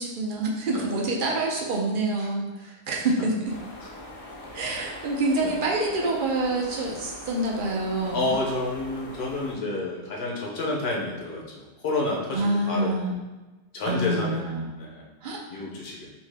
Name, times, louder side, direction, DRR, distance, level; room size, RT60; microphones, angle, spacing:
voice 1, 0.0-3.4 4.5-8.3 12.3-13.1 13.9-14.7 15.2-15.4, right 2 dB, 55° right, -2 dB, 0.7 m, -27 dB
sound 1, 3.4-9.5, left 1 dB, 40° left, 0.6 m, -42 dB
voice 2, 8.1-12.9 13.7-14.5 14.8-15.0 15.5-16.1, left 2 dB, 65° left, -2 dB, 1.0 m, -30 dB
2.8 x 2.7 x 3.3 m, 1.1 s
omnidirectional pair, 1.2 m